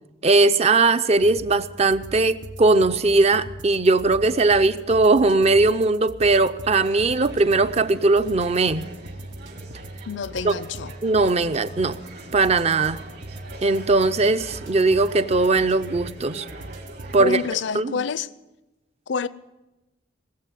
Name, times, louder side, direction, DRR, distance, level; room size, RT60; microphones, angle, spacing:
voice 1, 0.2-8.8 10.4-10.5 11.0-12.0 12.3-13.0 13.6-16.5 17.1-17.4 17.7-17.9, right 3 dB, 35° right, 0.5 m, -19 dB
sound 1, 1.2-17.2, right 1 dB, 75° right, 1.1 m, -41 dB
sound 2, 6.6-17.6, right 2 dB, 55° right, 2.7 m, -43 dB
voice 2, 10.1-10.9 17.2-18.3 19.1-19.3, left 5 dB, 65° left, 0.5 m, -27 dB
19.5 x 7.4 x 9.1 m
head